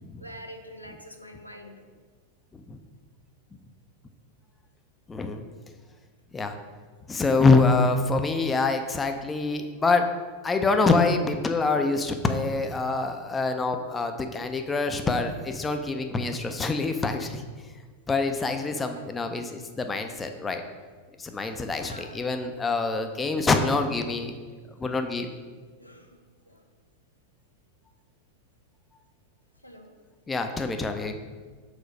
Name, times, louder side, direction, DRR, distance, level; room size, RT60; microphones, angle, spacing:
voice 1, 0.2-1.8 18.9-19.0 21.4-21.5 21.8-22.3 25.8-26.6 29.6-29.9, equal, 90° left, 4 dB, 0.5 m, -45 dB
voice 2, 5.1-5.4 6.3-6.6 7.1-10.1 10.4-17.4 18.1-20.6 21.2-24.3 24.8-25.3 30.3-31.1, left 3 dB, 15° left, 6 dB, 0.4 m, -25 dB
4.9 x 4.0 x 5.0 m, 1.5 s
figure-of-eight pair, 90°, 0 cm